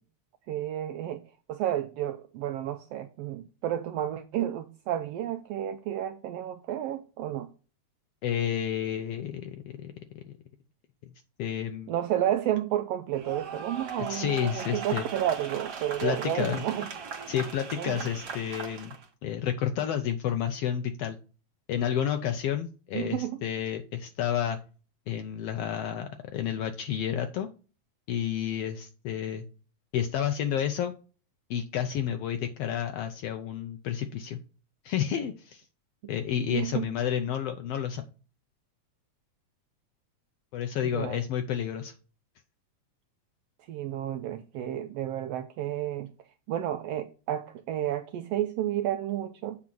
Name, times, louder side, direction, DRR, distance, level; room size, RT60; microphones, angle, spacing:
voice 1, 0.5-1.2 1.5-7.5 11.9-16.9 17.8-18.1 22.9-23.4 36.5-36.9 40.8-41.2 43.7-46.1 46.5-49.6, right 11 dB, 85° right, 1.4 m, -31 dB
voice 2, 8.2-10.4 11.4-11.9 14.1-15.1 16.0-16.6 17.3-19.0 19.2-21.2 21.7-24.6 25.1-27.5 28.1-29.4 29.9-30.9 31.5-34.4 34.8-35.6 36.1-38.0 40.5-41.9, left 9 dB, 85° left, 1.4 m, -30 dB
sound 1, 13.1-19.1, right 5 dB, 50° right, 1.2 m, -39 dB
7.7 x 3.6 x 6.0 m
omnidirectional pair, 3.4 m